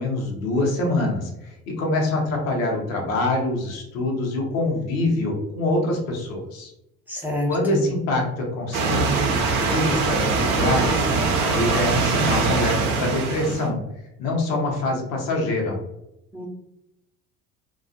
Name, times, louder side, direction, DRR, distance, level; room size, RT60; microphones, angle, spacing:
voice 1, 0.0-6.7 7.5-13.8 14.2-15.8, left 2 dB, 70° left, 0 dB, 0.8 m, -25 dB
voice 2, 7.1-7.9 16.3-16.5, left 2 dB, 5° right, -3 dB, 0.6 m, -27 dB
sound 1, 8.7-13.7, right 4 dB, 55° right, 0.6 m, -22 dB
2.3 x 2.2 x 2.6 m, 0.85 s
figure-of-eight pair, 55°, 42 cm